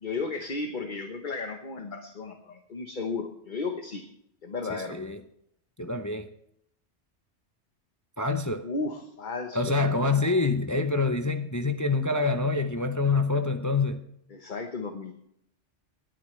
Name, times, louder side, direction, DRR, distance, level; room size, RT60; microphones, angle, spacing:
voice 1, 0.0-4.0 4.4-5.0 8.6-10.4 14.3-15.2, left 4 dB, 45° left, 5 dB, 1.2 m, -34 dB
voice 2, 4.7-5.2 5.8-6.3 8.2-8.6 9.5-14.0, left 3 dB, 20° left, 7 dB, 0.6 m, -26 dB
20.5 x 10.0 x 3.2 m, 0.73 s
omnidirectional pair, 1.2 m